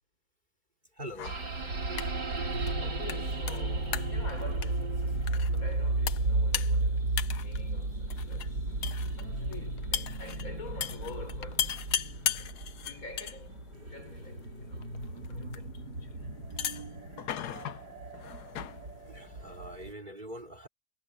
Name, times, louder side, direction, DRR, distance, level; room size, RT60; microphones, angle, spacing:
voice 1, 1.0-1.4 5.2-5.3 14.7-15.5 16.7-16.8 18.2-18.4 19.0-20.7, equal, 25° right, 3.6 m, -45 dB
sound 1, 1.1-19.9, left 10 dB, 65° left, 1.3 m, -39 dB
sound 2, 1.2-19.9, right 2 dB, 65° right, 4.4 m, -34 dB
voice 2, 2.8-8.6 9.1-11.8 12.4-12.6 12.8-13.6 13.9-14.9 15.3-16.2, left 3 dB, 50° left, 4.7 m, -47 dB
omnidirectional pair, 2.0 m